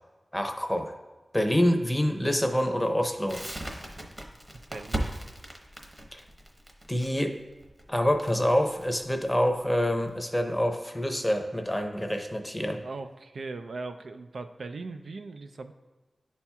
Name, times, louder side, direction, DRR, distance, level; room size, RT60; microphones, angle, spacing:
voice 1, 0.3-0.9 1.3-3.4 6.1-6.2 6.9-7.4 7.9-12.8, equal, 10° left, 5 dB, 0.7 m, -26 dB
Crackle, 3.3-10.1, right 1 dB, 20° right, 0.9 m, -38 dB
voice 2, 4.7-5.1 12.8-15.7, right 3 dB, 85° right, 7 dB, 0.4 m, -39 dB
10.5 x 4.3 x 2.3 m, 1.2 s
wide cardioid pair, 80°, 0 cm